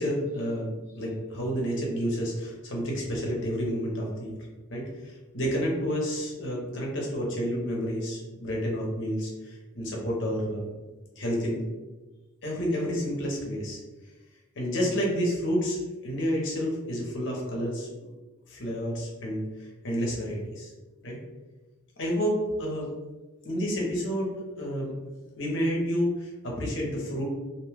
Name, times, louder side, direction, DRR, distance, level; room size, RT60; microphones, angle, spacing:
voice 1, 0.0-4.4 4.7-10.7 11.1-11.6 12.4-13.8 14.6-18.1 18.5-20.7 21.0-21.2 22.0-22.9 23.4-25.0 25.3-27.2, equal, 60° left, -2 dB, 0.8 m, -30 dB
2.7 x 2.2 x 3.3 m, 1.2 s
head